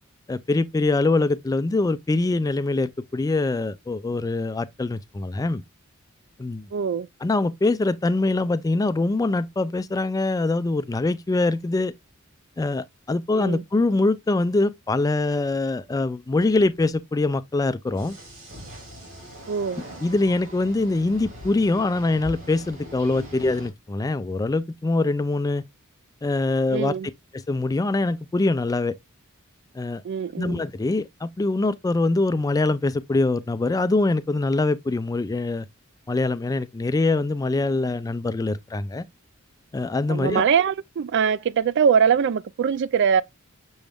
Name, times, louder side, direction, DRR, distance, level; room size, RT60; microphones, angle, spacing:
voice 1, 0.3-5.6 6.4-6.7 7.2-11.9 12.6-18.2 20.0-25.6 26.2-26.9 27.3-29.0 29.7-30.0 30.4-35.7 36.1-39.0 39.7-40.4, left 2 dB, 15° left, 0.3 m, -23 dB
voice 2, 6.7-7.1 13.3-13.6 19.5-19.8 26.7-27.1 30.0-30.6 40.1-43.2, right 7 dB, 60° right, 0.3 m, -22 dB
sound 1, 17.9-23.7, equal, 80° right, 2.6 m, -41 dB
6.2 x 3.4 x 2.2 m
head